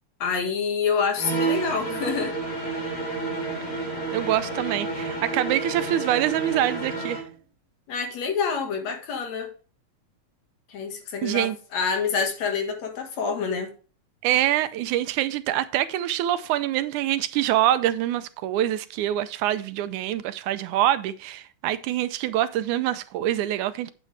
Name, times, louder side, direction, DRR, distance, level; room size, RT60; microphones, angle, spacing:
voice 1, 0.2-2.3 7.9-9.5 10.7-13.7, left 5 dB, 60° left, 2.7 m, -27 dB
sound 1, 1.1-7.3, right 3 dB, 85° left, 5.4 m, -30 dB
voice 2, 4.1-7.2 11.2-11.6 14.2-23.9, right 13 dB, 80° right, 2.0 m, -25 dB
9.2 x 8.6 x 3.3 m
omnidirectional pair, 3.6 m